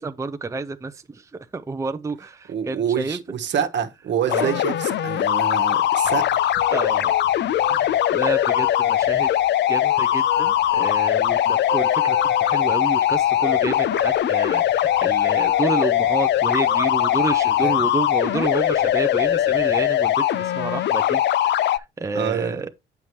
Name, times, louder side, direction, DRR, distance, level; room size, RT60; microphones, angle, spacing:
voice 1, 0.0-3.2 4.3-4.6 6.7-7.1 7.7-9.3 9.7-22.7, right 3 dB, 15° right, 0.5 m, -29 dB
voice 2, 2.5-6.2 22.1-22.6, right 8 dB, 65° right, 1.2 m, -26 dB
sound 1, 4.3-21.8, left 12 dB, 60° left, 0.5 m, -20 dB
sound 2, 5.8-19.8, left 2 dB, 80° left, 2.1 m, -37 dB
7.9 x 5.8 x 3.1 m
cardioid pair, 90°, 20 cm